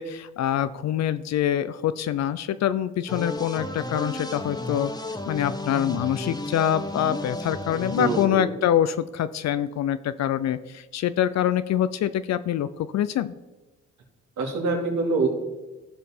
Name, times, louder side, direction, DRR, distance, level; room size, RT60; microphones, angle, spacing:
voice 1, 0.0-13.3, left 10 dB, 60° left, 13 dB, 0.5 m, -25 dB
sound 1, 3.1-8.3, left 2 dB, 15° left, 1.1 m, -33 dB
voice 2, 8.0-8.5 14.4-15.3, right 3 dB, 75° right, 1 dB, 2.6 m, -25 dB
15.0 x 5.3 x 4.4 m, 1.1 s
cardioid pair, 90°, 30 cm